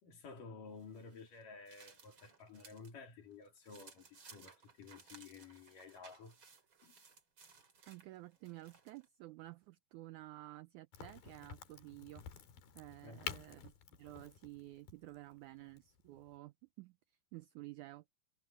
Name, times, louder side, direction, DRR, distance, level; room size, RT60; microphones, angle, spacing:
voice 1, 0.0-6.4 6.8-7.0 13.0-13.3, left 4 dB, 65° left, 4.9 m, -53 dB
sound 1, 0.8-2.9 3.3-9.1, right 5 dB, 35° right, 3.2 m, -61 dB
voice 2, 7.9-12.2 12.8-18.1, right 18 dB, 85° right, 1.7 m, -52 dB
Crack, 10.9-16.4, left 9 dB, 90° left, 4.2 m, -50 dB
omnidirectional pair, 4.1 m